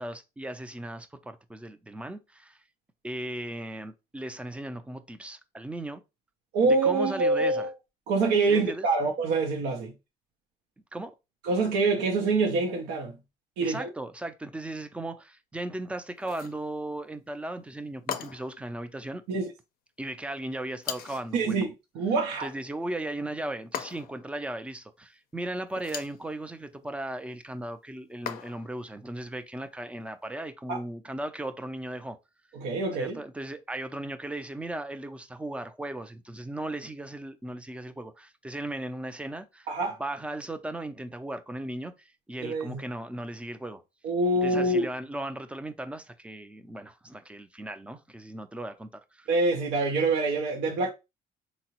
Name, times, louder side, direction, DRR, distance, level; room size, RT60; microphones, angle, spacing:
voice 1, 0.0-2.6 3.0-6.0 6.8-7.7 8.5-8.9 10.9-11.1 13.6-19.2 20.0-21.7 22.4-32.2 33.0-39.7 40.0-43.8 44.4-49.3, right 1 dB, 5° right, 0.3 m, -37 dB
voice 2, 6.5-7.7 8.1-9.9 11.4-13.2 13.6-13.9 19.3-19.5 21.3-21.7 21.9-22.5 30.7-30.8 32.5-33.2 39.7-40.0 42.4-42.8 44.0-44.9 49.3-50.9, right 3 dB, 90° right, 0.5 m, -25 dB
sound 1, 16.2-16.6 18.1-18.6 20.8-21.3 23.7-24.3 25.7-26.2 28.3-28.8, left 8 dB, 60° left, 0.4 m, -37 dB
3.6 x 2.0 x 2.8 m
cardioid pair, 110°, 17 cm